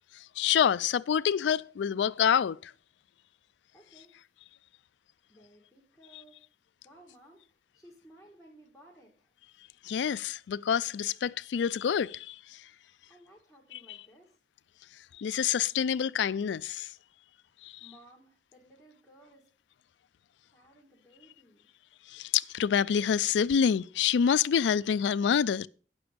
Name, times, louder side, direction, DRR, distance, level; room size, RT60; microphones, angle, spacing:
voice 1, 0.4-2.7 9.8-12.6 13.7-14.0 15.2-16.9 17.6-17.9 22.1-25.7, left 7 dB, 85° left, 0.3 m, -27 dB
voice 2, 3.7-4.2 5.3-6.4 6.8-9.3 13.1-14.4 17.4-19.5 20.5-21.7, right 1 dB, 5° left, 1.9 m, -58 dB
9.8 x 7.0 x 5.0 m
head